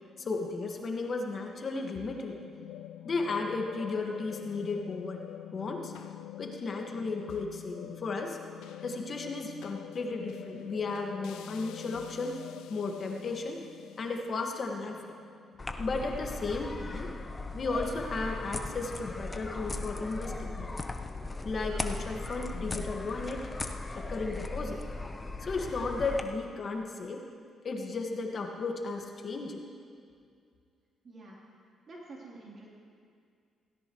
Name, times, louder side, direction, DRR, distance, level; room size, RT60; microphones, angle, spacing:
voice 1, 0.2-2.4 3.0-5.9 6.4-8.4 8.8-12.4 12.7-13.6 14.0-15.2 15.8-17.1 17.5-20.7 21.4-23.5 23.9-24.8 25.4-27.2 27.6-29.6, left 3 dB, 45° left, 2 dB, 1.6 m, -34 dB
sound 1, 1.9-16.4, left 14 dB, 90° left, 0.3 m, -46 dB
sound 2, 15.6-26.2, left 2 dB, 25° left, 0.8 m, -38 dB
voice 2, 31.0-31.4 31.9-32.7, right 2 dB, 45° right, -4 dB, 3.3 m, -47 dB
16.5 x 16.5 x 3.1 m, 2.2 s
cardioid pair, 90°, 0 cm